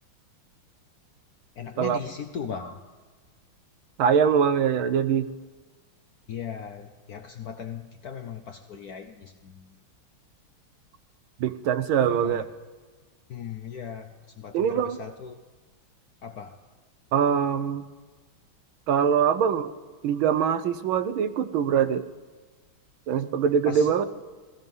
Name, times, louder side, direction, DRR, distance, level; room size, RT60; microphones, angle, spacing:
voice 1, 1.6-2.8 6.3-9.7 12.0-12.4 13.3-15.3 16.2-16.6 23.7-24.1, left 7 dB, 65° left, 7 dB, 0.9 m, -38 dB
voice 2, 4.0-5.3 11.4-12.4 14.5-15.0 17.1-17.8 18.9-19.7 20.0-22.0 23.1-24.1, right 8 dB, 75° right, 12 dB, 1.5 m, -23 dB
16.5 x 14.5 x 5.4 m, 1.4 s
omnidirectional pair, 2.4 m